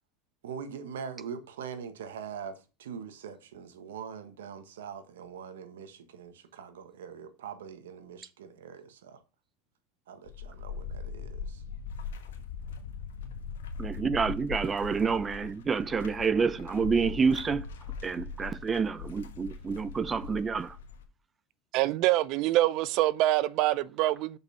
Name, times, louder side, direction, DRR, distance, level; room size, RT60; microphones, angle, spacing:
voice 1, 0.4-9.2 10.1-11.6 12.2-12.3, right 7 dB, 85° right, 1.3 m, -43 dB
sound 1, 10.3-21.1, left 6 dB, 90° left, 1.4 m, -40 dB
voice 2, 13.8-17.6 18.0-20.8, right 5 dB, 25° right, 0.8 m, -28 dB
voice 3, 21.7-24.4, right 16 dB, 60° right, 0.5 m, -25 dB
6.7 x 5.5 x 5.6 m
hypercardioid pair, 100°, 0 cm